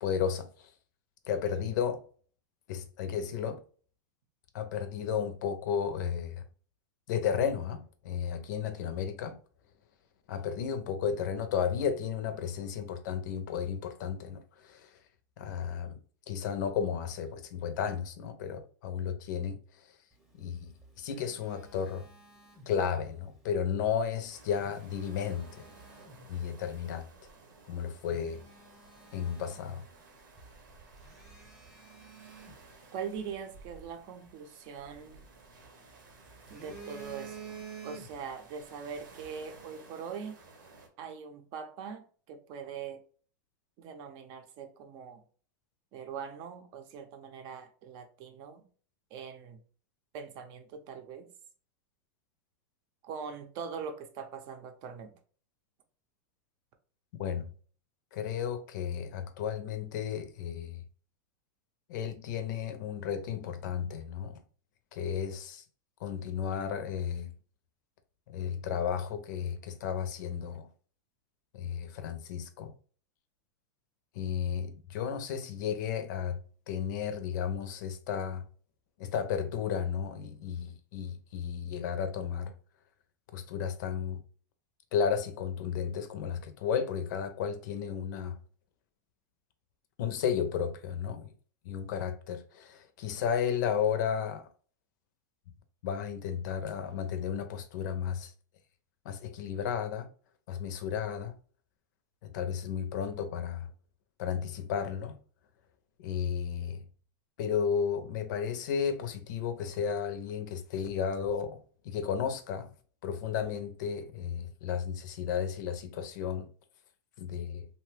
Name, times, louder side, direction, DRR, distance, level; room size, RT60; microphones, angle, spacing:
voice 1, 0.0-0.7 1.3-2.0 2.7-3.6 4.5-6.4 7.1-9.4 10.3-14.9 15.4-16.0 16.3-19.6 20.4-22.0 22.7-25.7 26.3-27.1 27.7-28.4 29.1-29.8 57.2-57.5 58.1-60.8 61.9-64.4 64.9-65.6 66.0-67.3 68.3-70.7 71.5-72.7 74.1-76.4 76.7-78.4 79.0-82.5 83.3-84.2 84.9-88.4 90.0-91.3 91.6-94.5 95.8-98.3 99.0-100.1 100.5-101.3 102.2-103.7 104.2-105.1 106.0-106.8 107.4-111.6 111.8-112.7 113.0-116.5 117.2-117.7, left 7 dB, 65° left, 0.5 m, -33 dB
Telephone, 20.6-23.1 24.4-26.3 26.9-27.1 27.6-27.7 28.1-30.1 30.4-30.5 31.0-33.4 34.9-35.9 36.3-38.4 38.7-39.0, right 5 dB, 5° right, 0.7 m, -50 dB
sound 1, 24.3-40.9, right 3 dB, 90° right, 0.9 m, -55 dB
voice 2, 32.9-35.2 36.5-40.4 41.0-43.0 43.8-45.2 45.9-48.7 49.1-49.6 50.1-51.3 53.0-55.2, right 6 dB, 45° right, 0.6 m, -42 dB
2.8 x 2.1 x 3.2 m
supercardioid pair, 130°, 10 cm